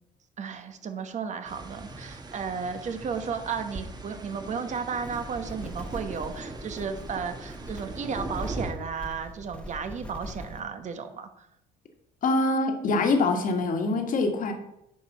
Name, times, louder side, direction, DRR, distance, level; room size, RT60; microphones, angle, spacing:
voice 1, 0.4-11.5, right 6 dB, 45° right, 8 dB, 1.3 m, -34 dB
sound 1, 1.5-8.7, right 2 dB, 25° right, 1.4 m, -40 dB
sound 2, 5.0-10.6, equal, 5° left, 1.2 m, -42 dB
voice 2, 12.2-14.5, left 3 dB, 55° left, 4 dB, 1.8 m, -24 dB
9.1 x 5.3 x 6.1 m, 0.80 s
cardioid pair, 110°, 17 cm